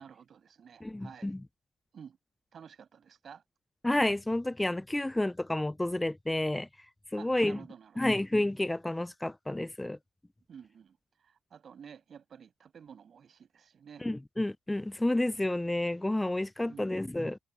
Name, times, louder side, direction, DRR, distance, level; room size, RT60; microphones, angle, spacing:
voice 1, 0.0-1.3 1.9-2.2 2.5-3.4 7.1-8.1 10.5-14.1 16.7-17.0, right 7 dB, 50° right, 6.8 m, -51 dB
voice 2, 0.8-1.4 3.8-6.7 7.1-7.6 8.0-10.0 14.0-17.4, left 1 dB, 10° left, 0.4 m, -30 dB
cardioid pair, 85°, 0 cm